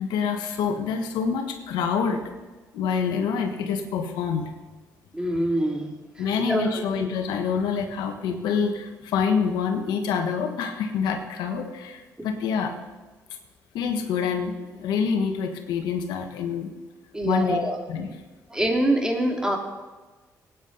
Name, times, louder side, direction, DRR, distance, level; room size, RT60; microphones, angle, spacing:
voice 1, 0.0-2.3 2.7-4.5 6.2-12.7 13.7-16.7 17.2-17.6 17.9-18.2, left 6 dB, 85° left, 5 dB, 1.4 m, -26 dB
voice 2, 5.1-5.9 6.2-6.8 12.2-12.3 17.1-17.8 18.5-19.6, right 1 dB, 10° right, 1 dB, 2.8 m, -25 dB
16.5 x 9.4 x 4.0 m, 1.2 s
supercardioid pair, 70°, 7 cm